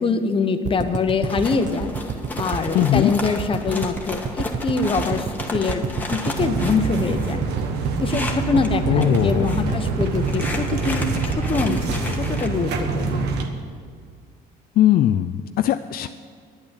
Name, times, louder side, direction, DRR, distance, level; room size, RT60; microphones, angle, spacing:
voice 1, 0.0-1.9 2.3-5.8 6.1-7.4 8.0-13.3, left 4 dB, 30° left, 8 dB, 1.0 m, -24 dB
sound 1, 0.6-12.8 13.1-13.2 13.4-13.5, right 6 dB, 45° right, 0.9 m, -29 dB
sound 2, 1.3-8.7 9.0-9.7 10.0-12.5, left 2 dB, 10° left, 1.5 m, -33 dB
voice 2, 2.7-3.1 8.9-9.8 14.8-16.1, left 12 dB, 60° left, 10 dB, 0.4 m, -20 dB
sound 3, 6.4-13.5, right 4 dB, 85° right, 1.3 m, -26 dB
10.5 x 8.7 x 8.3 m, 2.1 s
cardioid pair, 110°, 17 cm